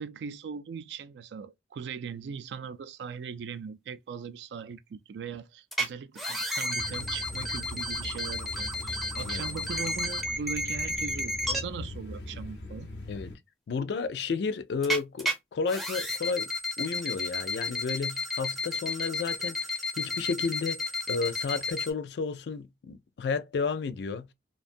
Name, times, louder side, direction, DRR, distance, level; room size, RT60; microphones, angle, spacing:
voice 1, 0.0-12.9, right 6 dB, 75° right, 0.3 m, -39 dB
sound 1, 5.7-5.9 6.2-11.6 14.8-15.3 15.7-21.9, left 2 dB, ahead, 0.4 m, -32 dB
sound 2, 6.8-13.3, left 2 dB, 85° left, 0.8 m, -41 dB
voice 2, 13.7-16.5 16.8-24.3, left 5 dB, 70° left, 0.3 m, -32 dB
2.5 x 2.2 x 2.5 m
head